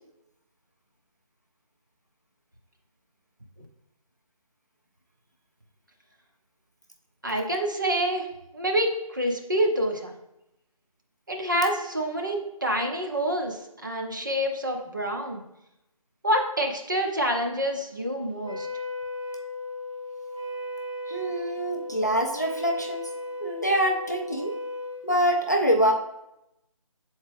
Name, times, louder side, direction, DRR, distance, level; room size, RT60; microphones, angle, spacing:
voice 1, 7.2-8.3 8.5-10.1 11.3-15.4 16.2-18.7, right 1 dB, 35° right, 1 dB, 0.7 m, -27 dB
Wind instrument woodwind instrument, 18.4-25.0, left 2 dB, 55° right, 1.1 m, -36 dB
voice 2, 21.1-23.0 23.4-24.5 25.0-25.9, equal, 30° left, 2 dB, 0.4 m, -25 dB
6.7 x 4.3 x 3.4 m, 0.85 s
figure-of-eight pair, 175°, 18 cm